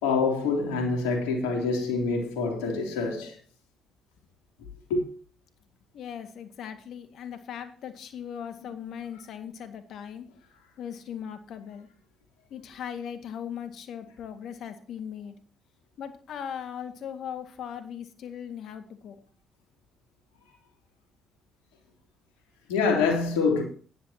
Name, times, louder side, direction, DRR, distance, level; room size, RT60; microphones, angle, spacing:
voice 1, 0.0-3.4 4.9-5.0 22.7-23.6, left 4 dB, 90° left, 3.2 m, -26 dB
voice 2, 5.9-10.3 10.8-11.9 12.5-15.3 16.0-19.2, left 8 dB, 70° left, 2.0 m, -39 dB
15.0 x 11.0 x 2.9 m
hypercardioid pair, 55°, 0 cm